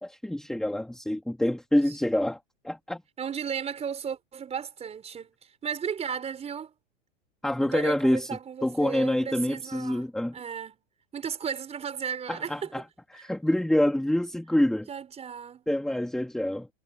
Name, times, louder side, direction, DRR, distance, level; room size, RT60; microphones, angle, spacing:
voice 1, 0.0-2.4 2.6-3.0 7.4-8.3 8.6-10.3 12.3-12.8 13.1-14.9 15.7-16.7, left 1 dB, ahead, 2.4 m, -26 dB
voice 2, 1.9-2.2 3.2-6.7 7.6-10.0 10.3-10.8 11.1-12.7 13.1-13.2 14.9-15.6, right 7 dB, 15° right, 5.0 m, -35 dB
hypercardioid pair, 135°, 38 cm